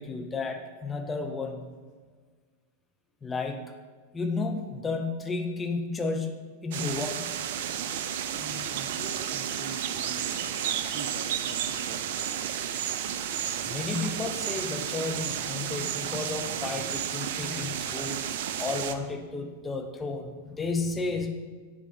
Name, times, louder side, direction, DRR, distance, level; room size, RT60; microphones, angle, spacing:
voice 1, 0.0-1.7 3.2-3.6 4.1-6.4 6.6-7.3 13.7-18.3 18.6-21.3, left 3 dB, 15° left, 4 dB, 0.5 m, -32 dB
sound 1, 6.7-18.9, right 9 dB, 55° right, 0.3 m, -32 dB
voice 2, 8.3-12.8, right 3 dB, 40° right, 3 dB, 0.8 m, -44 dB
8.8 x 3.6 x 3.5 m, 1.5 s
figure-of-eight pair, 90°, 0 cm